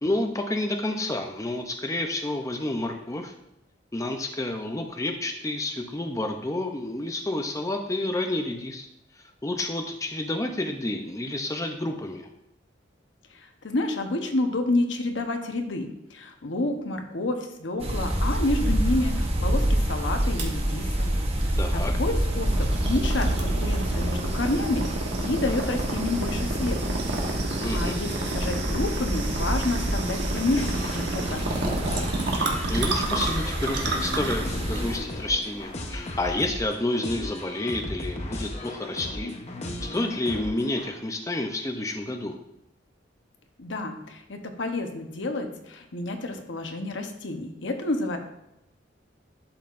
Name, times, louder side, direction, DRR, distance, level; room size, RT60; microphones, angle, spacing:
voice 1, 0.0-3.3 3.9-8.9 9.1-12.3 21.6-21.9 27.6-28.0 32.7-39.3 39.8-42.3, left 2 dB, 15° left, 3 dB, 0.5 m, -29 dB
voice 2, 13.6-21.1 21.4-27.0 27.3-32.1 43.6-48.2, left 2 dB, 80° left, 5 dB, 1.0 m, -29 dB
sound 1, 17.8-35.0, right 1 dB, 35° right, 1.0 m, -28 dB
sound 2, 20.4-36.7, right 2 dB, 65° right, 1.2 m, -31 dB
sound 3, 30.6-40.9, left 1 dB, 35° left, 0.9 m, -36 dB
11.5 x 5.6 x 2.5 m, 0.85 s
head